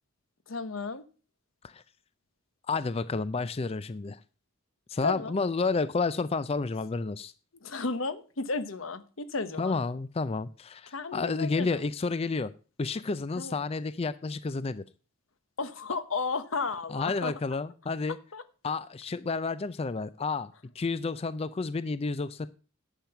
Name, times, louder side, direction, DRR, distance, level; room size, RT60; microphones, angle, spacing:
voice 1, 0.5-1.0 5.0-5.4 7.6-9.8 10.9-11.8 13.4-13.6 15.6-17.3 18.3-18.4, left 4 dB, 85° left, 1.1 m, -33 dB
voice 2, 2.7-4.2 4.9-7.3 9.6-12.5 12.8-14.8 16.9-18.2 18.6-22.5, left 4 dB, 30° left, 0.4 m, -30 dB
10.5 x 7.5 x 5.8 m
head